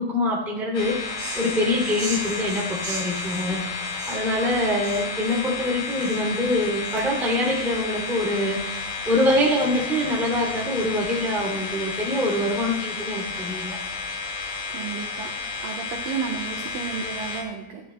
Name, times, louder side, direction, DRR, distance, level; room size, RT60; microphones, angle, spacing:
voice 1, 0.0-13.8, left 1 dB, ahead, -3 dB, 1.2 m, -25 dB
sound 1, 0.7-17.4, left 4 dB, 90° left, 4.7 m, -32 dB
sound 2, 1.1-7.3, right 3 dB, 45° right, 1.3 m, -38 dB
voice 2, 14.7-15.3 15.6-17.8, right 7 dB, 80° right, 1 dB, 1.9 m, -32 dB
16.0 x 11.5 x 2.3 m, 0.94 s
omnidirectional pair, 5.3 m